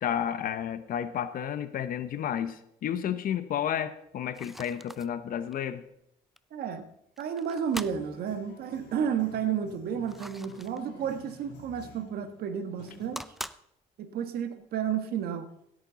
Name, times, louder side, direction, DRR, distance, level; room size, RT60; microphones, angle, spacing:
voice 1, 0.0-5.8, left 9 dB, 55° left, 12 dB, 0.8 m, -31 dB
sound 1, 4.3-5.1 5.4-5.5 6.4-6.5 7.2-7.9 10.1-10.8 12.8-13.6, equal, ahead, 0.5 m, -42 dB
voice 2, 6.5-6.8 7.2-13.2 14.0-15.5, right 8 dB, 65° right, 9 dB, 1.5 m, -32 dB
sound 2, 7.7-13.1, left 2 dB, 80° left, 3.4 m, -51 dB
16.0 x 8.8 x 4.0 m, 0.77 s
cardioid pair, 110°, 17 cm